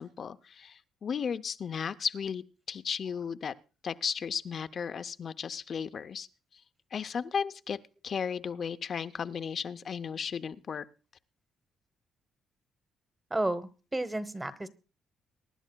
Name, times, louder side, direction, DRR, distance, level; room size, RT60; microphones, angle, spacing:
voice 1, 0.0-3.5 3.8-6.3 6.5-6.6 6.9-10.9, left 6 dB, 50° left, 12 dB, 0.6 m, -35 dB
voice 2, 13.3-14.7, right 1 dB, 15° right, 12 dB, 1.1 m, -32 dB
23.5 x 11.0 x 2.3 m, 0.33 s
cardioid pair, 90°, 0 cm